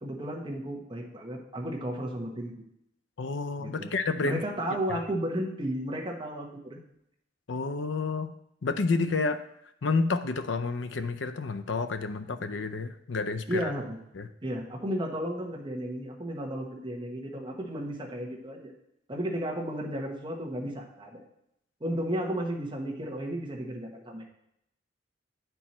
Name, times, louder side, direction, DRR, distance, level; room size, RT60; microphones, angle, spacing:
voice 1, 0.0-2.5 3.6-3.9 4.2-6.8 13.5-14.0 14.4-18.7 19.1-21.2 21.8-24.2, right 1 dB, 25° right, -1 dB, 1.1 m, -33 dB
voice 2, 3.2-4.4 4.9-5.0 7.5-8.3 8.6-9.4 9.8-13.7 14.2-14.3, left 3 dB, 75° left, 9 dB, 0.6 m, -30 dB
8.8 x 4.6 x 4.2 m, 0.78 s
head